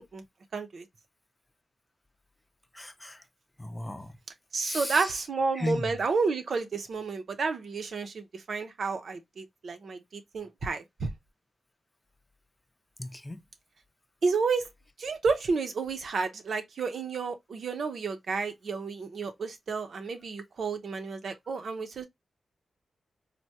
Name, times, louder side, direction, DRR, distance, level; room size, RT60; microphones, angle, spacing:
voice 1, 0.5-0.8 4.5-11.1 14.2-14.7 15.0-22.1, right 4 dB, 70° right, 0.6 m, -31 dB
voice 2, 2.7-3.2 3.6-4.2 4.6-5.1 5.5-6.0 13.0-13.4, left 1 dB, 15° left, 0.6 m, -35 dB
3.4 x 2.2 x 2.8 m
cardioid pair, 65°, 0 cm